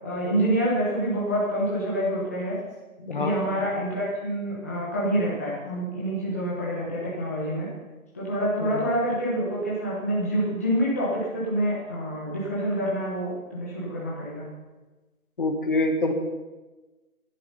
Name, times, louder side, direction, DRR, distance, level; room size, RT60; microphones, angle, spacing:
voice 1, 0.0-2.6 3.1-7.7 8.1-14.5, right 1 dB, 10° left, -7 dB, 1.0 m, -27 dB
voice 2, 3.1-3.4 8.6-8.9 15.4-16.1, left 2 dB, 35° left, 6 dB, 1.3 m, -26 dB
12.5 x 11.0 x 5.5 m, 1.2 s
figure-of-eight pair, 170°, 44 cm